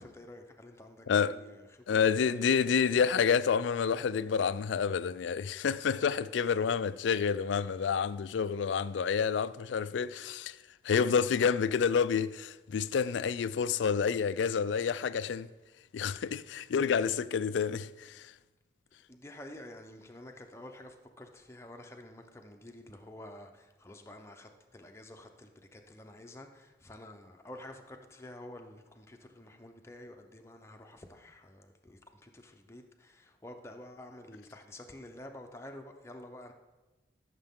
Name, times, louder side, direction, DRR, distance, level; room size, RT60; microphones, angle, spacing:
voice 1, 0.0-2.2 2.6-2.7 6.4-6.5 19.1-36.5, left 1 dB, 15° left, 0.7 m, -49 dB
voice 2, 1.1-1.4 1.9-10.6 10.8-15.5 15.9-18.3, left 6 dB, 85° left, 0.4 m, -29 dB
13.0 x 6.6 x 3.7 m
head